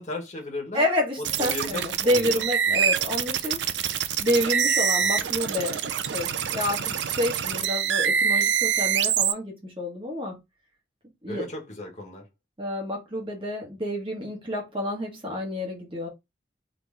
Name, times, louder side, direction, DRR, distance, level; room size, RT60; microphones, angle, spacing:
voice 1, 0.0-0.8 1.2-3.0 5.0-5.3 11.3-12.2, left 2 dB, 40° left, 1.5 m, -36 dB
voice 2, 0.7-3.6 4.2-10.4 11.2-11.5 12.6-16.1, left 1 dB, 30° right, 1.3 m, -29 dB
sound 1, 1.2-9.3, right 8 dB, 85° right, 0.5 m, -25 dB
3.9 x 3.0 x 3.4 m
head